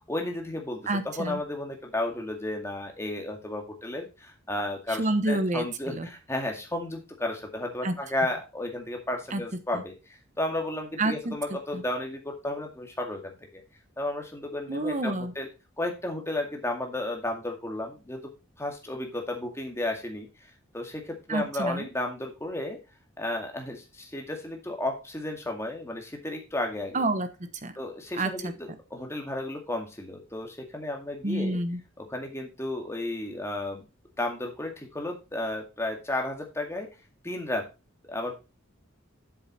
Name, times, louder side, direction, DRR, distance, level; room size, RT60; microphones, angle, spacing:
voice 1, 0.1-13.6 14.0-15.5 15.8-18.2 18.6-20.3 20.7-22.8 23.2-27.0 27.8-31.6 32.0-33.8 34.2-36.9 37.2-37.7 38.1-38.3, left 1 dB, 15° left, 2 dB, 2.1 m, -33 dB
voice 2, 0.9-1.4 4.9-6.1 7.8-8.0 9.3-9.4 9.7-9.8 11.0-11.4 11.7-11.8 14.7-15.3 21.3-21.9 26.9-27.7 28.1-28.5 31.2-31.8, right 2 dB, 40° right, 10 dB, 1.1 m, -29 dB
7.9 x 7.4 x 4.2 m, 0.28 s
head